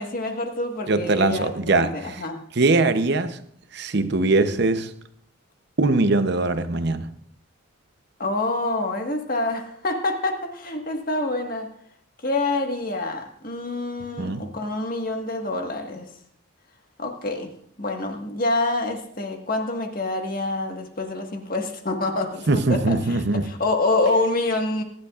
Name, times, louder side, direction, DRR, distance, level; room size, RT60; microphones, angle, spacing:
voice 1, 0.0-2.4 8.2-11.7 12.2-16.1 17.0-17.5 17.8-24.8, left 2 dB, 40° left, 1.6 m, -27 dB
voice 2, 0.9-2.2 2.5-3.4 3.7-4.9 5.8-7.1 14.2-14.5 22.5-23.5, right 3 dB, 50° right, 0.8 m, -21 dB
23.5 x 11.0 x 2.5 m
head